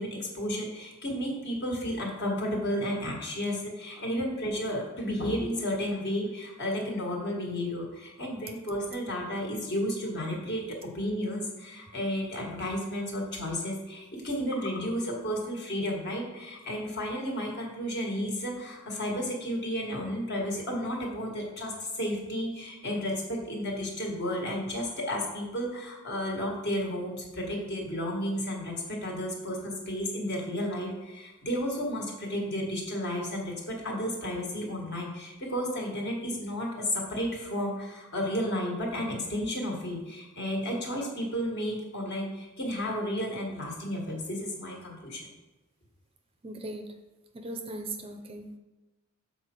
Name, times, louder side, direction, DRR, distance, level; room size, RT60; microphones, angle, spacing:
voice 1, 0.0-45.3, equal, 55° left, 1.6 m, -32 dB
voice 2, 46.4-46.9 47.3-48.5, right 2 dB, 25° right, 0.5 m, -38 dB
6.8 x 4.3 x 4.5 m
head